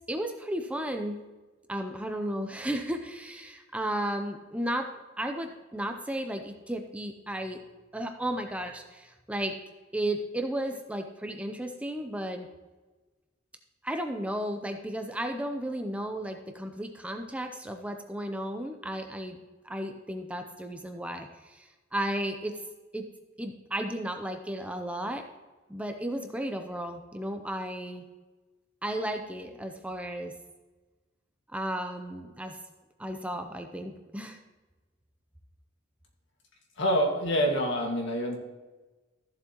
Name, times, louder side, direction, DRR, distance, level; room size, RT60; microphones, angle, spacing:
voice 1, 0.1-1.2 1.7-4.9 5.2-7.6 7.9-9.5 9.9-12.5 13.8-22.6 22.9-23.1 23.4-25.2 25.7-28.0 28.8-30.3 31.5-32.6 33.0-34.4, right 1 dB, 5° right, 5 dB, 0.6 m, -34 dB
voice 2, 36.8-38.4, equal, 65° left, 1 dB, 1.9 m, -26 dB
14.0 x 7.4 x 3.0 m, 1.2 s
head